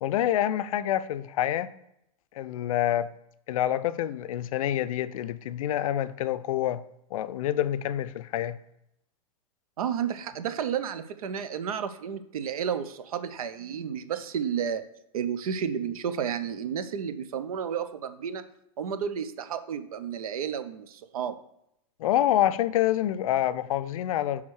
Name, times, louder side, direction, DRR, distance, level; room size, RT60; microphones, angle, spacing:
voice 1, 0.0-1.7 2.3-3.1 3.5-6.8 7.1-8.6 22.0-24.4, left 12 dB, 70° left, 0.4 m, -27 dB
voice 2, 9.8-14.8 15.1-18.4 18.8-21.4, right 8 dB, 80° right, 0.6 m, -31 dB
6.1 x 3.6 x 4.7 m
hypercardioid pair, 115°, 18 cm